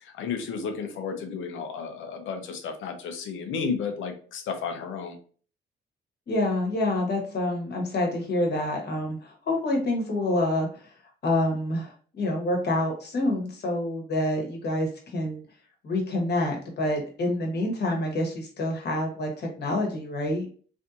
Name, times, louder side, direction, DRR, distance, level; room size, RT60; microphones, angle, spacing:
voice 1, 0.2-5.1, left 5 dB, 80° left, 5 dB, 0.7 m, -32 dB
voice 2, 6.3-10.8 11.2-15.4 15.8-20.5, left 1 dB, 55° left, 1 dB, 1.3 m, -27 dB
3.3 x 2.7 x 2.6 m, 0.43 s
cardioid pair, 90°, 20 cm